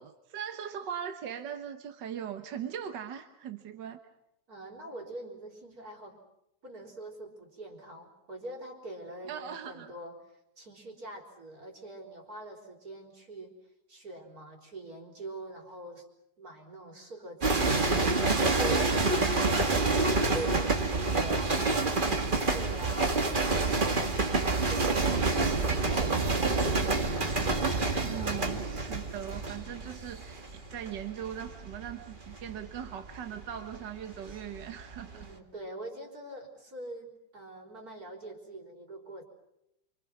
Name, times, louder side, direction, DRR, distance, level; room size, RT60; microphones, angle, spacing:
voice 1, 0.0-4.0 9.3-9.9 28.0-35.2, right 9 dB, 80° right, 8 dB, 1.8 m, -40 dB
voice 2, 4.5-6.2 6.6-10.1 10.6-13.5 13.9-16.1 16.4-20.0 20.3-21.5 21.8-23.2 23.5-27.1 35.1-39.2, right 1 dB, 55° right, 3 dB, 4.6 m, -44 dB
sound 1, 17.4-34.6 34.9-35.3, right 3 dB, 30° right, 1.9 m, -28 dB
29.0 x 26.0 x 6.0 m, 0.83 s
omnidirectional pair, 1.9 m